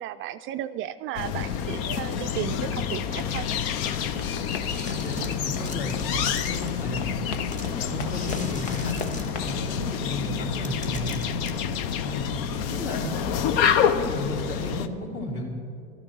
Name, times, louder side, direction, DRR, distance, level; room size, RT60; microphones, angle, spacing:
voice 1, 0.0-3.5 4.7-4.8, right 12 dB, 40° right, 10 dB, 0.4 m, -34 dB
sound 1, 1.1-14.9, left 7 dB, 65° left, 0.8 m, -28 dB
sound 2, 2.9-9.6, left 4 dB, 85° left, 1.1 m, -40 dB
sound 3, 4.4-6.9 7.5-9.8 10.4-10.5 10.6-11.5, left 2 dB, 25° left, 1.4 m, -42 dB
voice 2, 5.0-7.0 7.8-9.0 9.4-11.1 12.0-13.2 13.9-15.4, left 1 dB, 45° left, -1 dB, 3.3 m, -33 dB
12.5 x 10.5 x 6.1 m, 2.6 s
hypercardioid pair, 95°, 31 cm